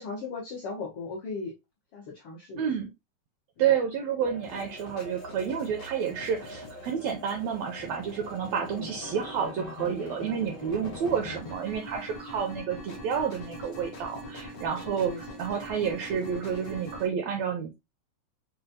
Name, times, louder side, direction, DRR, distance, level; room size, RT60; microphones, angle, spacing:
voice 1, 0.0-1.5 1.9-2.7 8.7-8.9 11.0-11.1 14.8-15.2, left 4 dB, 75° left, 1.3 m, -37 dB
voice 2, 2.6-2.9 3.6-17.7, right 7 dB, 80° right, 1.5 m, -30 dB
sound 1, 4.2-11.4, right 1 dB, 45° right, 0.6 m, -46 dB
sound 2, 4.4-17.1, left 1 dB, 50° left, 1.0 m, -43 dB
5.1 x 2.2 x 2.7 m
omnidirectional pair, 3.6 m